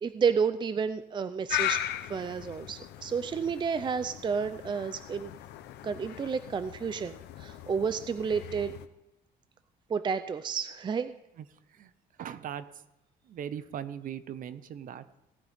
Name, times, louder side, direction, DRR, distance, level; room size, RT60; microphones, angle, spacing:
voice 1, 0.0-1.8 2.1-5.3 5.8-8.7 9.9-11.1, right 6 dB, 25° right, 12 dB, 0.5 m, -31 dB
sound 1, 1.5-8.9, left 13 dB, 80° left, 0.8 m, -38 dB
voice 2, 12.2-12.6 13.3-15.0, right 9 dB, 55° right, 14 dB, 0.8 m, -39 dB
17.5 x 9.4 x 3.6 m, 0.92 s
cardioid pair, 110°, 17 cm